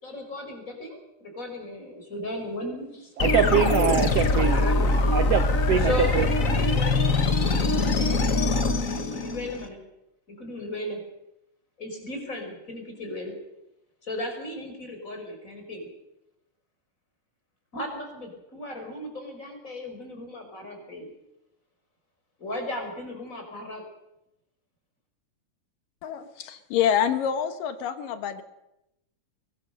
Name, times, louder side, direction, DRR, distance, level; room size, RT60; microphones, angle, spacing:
voice 1, 0.0-3.8 4.3-4.9 5.8-6.2 6.4-7.0 7.5-9.8 10.3-11.0 11.8-13.3 14.0-15.9 17.7-21.1 22.4-23.8, left 1 dB, 20° left, 4 dB, 5.1 m, -36 dB
sound 1, 3.2-9.7, left 2 dB, 55° left, 0.8 m, -23 dB
voice 2, 3.2-4.6 5.1-6.3, right 8 dB, 75° right, 11 dB, 1.4 m, -24 dB
voice 3, 26.0-28.4, left 9 dB, 80° left, 9 dB, 2.9 m, -26 dB
23.0 x 19.5 x 6.6 m, 0.88 s
omnidirectional pair, 3.9 m